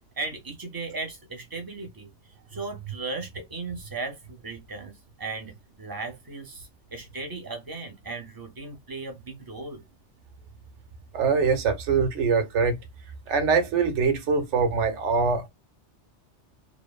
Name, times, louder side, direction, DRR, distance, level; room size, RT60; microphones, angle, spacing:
voice 1, 0.2-5.5 5.8-9.8, right 3 dB, 25° right, 0.7 m, -37 dB
voice 2, 11.1-12.8 13.3-15.5, right 5 dB, 85° right, 1.0 m, -23 dB
2.9 x 2.0 x 2.2 m
omnidirectional pair, 1.2 m